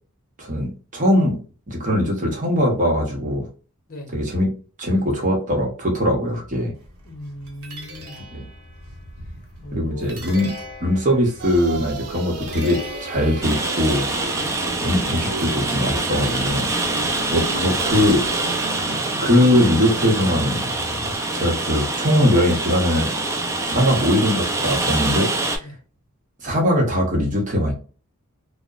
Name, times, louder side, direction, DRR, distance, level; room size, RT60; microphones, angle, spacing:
voice 1, 0.4-1.4 1.7-3.4 4.1-4.5 4.8-6.7 8.3-8.4 9.7-10.5 10.8-14.1 14.8-16.7 17.3-18.2 19.2-20.6 21.3-25.3 26.4-27.7, left 1 dB, 35° right, -1 dB, 0.8 m, -21 dB
sound 1, 6.8-18.9, left 1 dB, 65° right, 0.9 m, -40 dB
voice 2, 7.0-8.3 9.6-10.3 14.3-14.5 16.9-17.3 25.6-25.8, left 1 dB, 40° left, 2 dB, 0.7 m, -38 dB
sound 2, 11.4-21.2, right 2 dB, 90° right, 0.5 m, -34 dB
Rain, 13.4-25.6, right 2 dB, 15° right, 0.3 m, -25 dB
2.8 x 2.0 x 2.3 m, 0.38 s
head